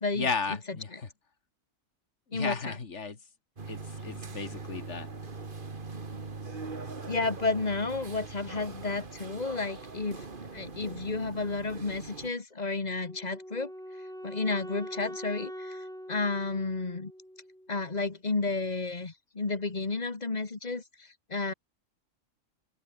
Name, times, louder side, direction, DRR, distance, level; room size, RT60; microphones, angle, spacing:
voice 1, 0.1-1.1 2.3-3.2 3.7-5.1, left 5 dB, 60° left, 2.5 m, -34 dB
voice 2, 2.3-2.7 7.1-10.2 10.5-13.7 14.2-17.1 17.7-21.5, left 3 dB, 30° left, 1.7 m, -32 dB
sound 1, 3.6-12.3, right 4 dB, 40° right, 2.0 m, -41 dB
Wind instrument woodwind instrument, 12.9-17.9, equal, 5° left, 2.5 m, -43 dB
open air
omnidirectional pair, 1.4 m